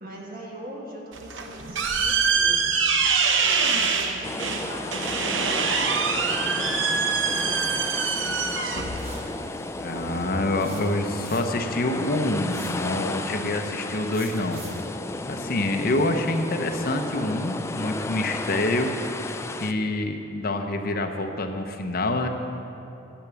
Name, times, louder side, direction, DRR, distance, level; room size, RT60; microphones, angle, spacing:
voice 1, 0.0-2.8 3.3-9.4, right 1 dB, 50° right, -1 dB, 1.8 m, -41 dB
sound 1, 1.1-10.2, right 5 dB, 80° right, 0.8 m, -25 dB
sound 2, 4.2-19.7, left 2 dB, 15° left, 0.3 m, -33 dB
sound 3, 9.0-9.3 10.6-11.7 12.5-12.9 14.1-14.9, right 3 dB, 35° right, 1.5 m, -44 dB
voice 2, 9.8-14.6 15.3-18.9 19.6-22.3, left 2 dB, 50° left, 5 dB, 0.8 m, -26 dB
10.0 x 7.5 x 7.0 m, 3.0 s
head